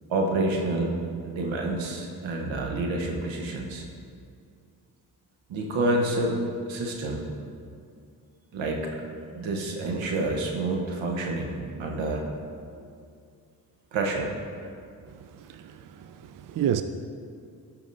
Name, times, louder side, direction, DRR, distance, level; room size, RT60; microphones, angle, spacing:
voice 1, 0.1-1.0 1.2-3.9 5.5-7.2 8.5-9.0 9.3-12.2 13.9-14.3, right 2 dB, 80° right, 1.0 m, -28 dB
voice 2, 15.1-16.8, right 10 dB, 45° right, 0.4 m, -31 dB
12.5 x 4.7 x 2.6 m
supercardioid pair, 40°, 45 cm